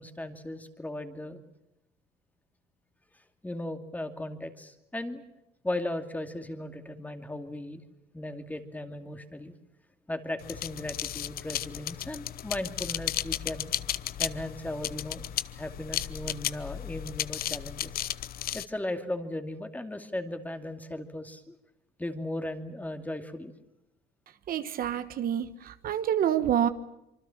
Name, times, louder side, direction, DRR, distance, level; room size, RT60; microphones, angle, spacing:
voice 1, 0.0-1.4 3.4-5.2 5.6-7.8 8.1-9.5 10.1-13.7 14.2-15.2 15.5-17.9 18.5-21.6 22.0-23.5, left 1 dB, 10° left, 7 dB, 2.5 m, -37 dB
sound 1, 10.4-18.7, left 12 dB, 60° left, 0.9 m, -34 dB
voice 2, 24.5-26.7, right 10 dB, 60° right, 11 dB, 1.4 m, -27 dB
26.0 x 24.5 x 7.3 m, 0.90 s
cardioid pair, 110°, 17 cm